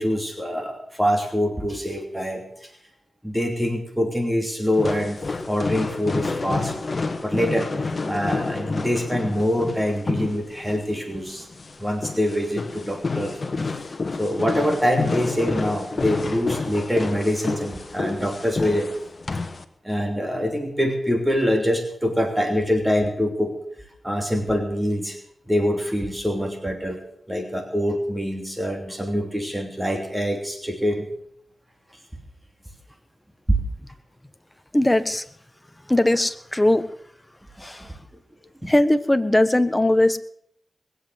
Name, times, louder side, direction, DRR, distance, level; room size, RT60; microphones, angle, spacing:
voice 1, 0.0-2.7 3.2-5.2 5.4-6.7 7.2-11.5 11.8-13.7 14.2-18.9 19.8-23.5 24.0-25.2 25.5-27.0 27.3-31.1 33.5-33.6 38.6-38.7, equal, 10° right, 3 dB, 3.0 m, -24 dB
sound 1, 4.7-19.6, left 3 dB, 50° left, 1.5 m, -29 dB
voice 2, 34.7-35.2 35.9-36.8 37.6-37.9 38.6-40.2, left 1 dB, 15° left, 11 dB, 1.3 m, -19 dB
21.0 x 8.0 x 8.0 m, 0.69 s
cardioid pair, 55°, 0 cm